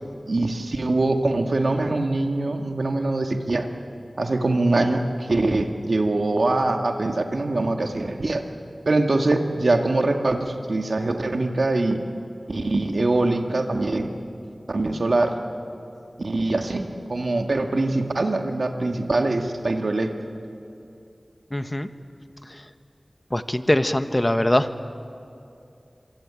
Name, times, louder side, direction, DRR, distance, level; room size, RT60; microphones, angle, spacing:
voice 1, 0.3-3.7 4.2-8.4 8.9-12.0 12.5-14.1 14.7-15.3 16.2-20.1, right 2 dB, 75° right, 5 dB, 2.0 m, -23 dB
voice 2, 21.5-21.9 23.3-24.7, left 1 dB, 25° left, 10 dB, 1.3 m, -22 dB
26.0 x 23.5 x 9.0 m, 2.6 s
wide cardioid pair, 40°, 0 cm